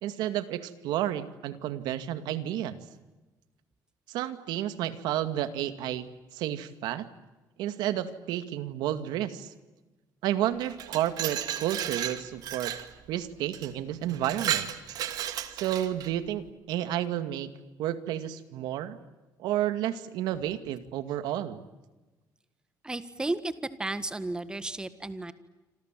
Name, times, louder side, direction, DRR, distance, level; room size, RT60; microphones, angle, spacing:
voice 1, 0.0-2.8 4.1-6.1 6.3-7.1 7.6-9.5 10.2-12.7 13.1-14.7 15.5-17.5 17.8-19.0 19.4-21.6, right 12 dB, 85° right, 11 dB, 2.2 m, -31 dB
Glass, 10.6-12.9 13.5-13.7 14.1-16.1, right 11 dB, 65° right, 2.4 m, -33 dB
voice 2, 22.8-23.5 23.8-25.3, right 2 dB, 10° right, 12 dB, 1.7 m, -33 dB
27.5 x 27.0 x 7.7 m, 1.1 s
cardioid pair, 135°, 7 cm